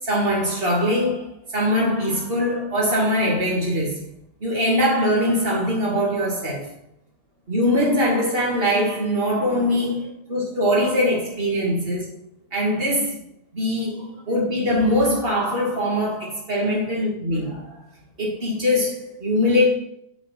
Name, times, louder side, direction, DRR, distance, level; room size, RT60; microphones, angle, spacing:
voice 1, 0.0-4.0 4.4-6.7 7.5-12.0 12.5-13.2 13.5-17.8 18.2-19.7, left 1 dB, 60° right, 2.5 m, -22 dB
6.9 x 6.1 x 4.6 m
omnidirectional pair, 1.1 m